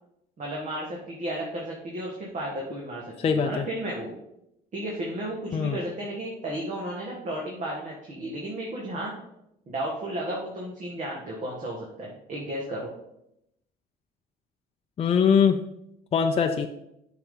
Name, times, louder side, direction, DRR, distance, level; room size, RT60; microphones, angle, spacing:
voice 1, 0.4-4.1 4.7-9.1 9.7-12.9, right 1 dB, 45° right, -2 dB, 1.8 m, -33 dB
voice 2, 3.2-3.7 5.5-5.8 15.0-15.6 16.1-16.7, left 6 dB, 35° left, 5 dB, 0.5 m, -22 dB
8.8 x 5.9 x 3.9 m, 0.81 s
cardioid pair, 110°, 17 cm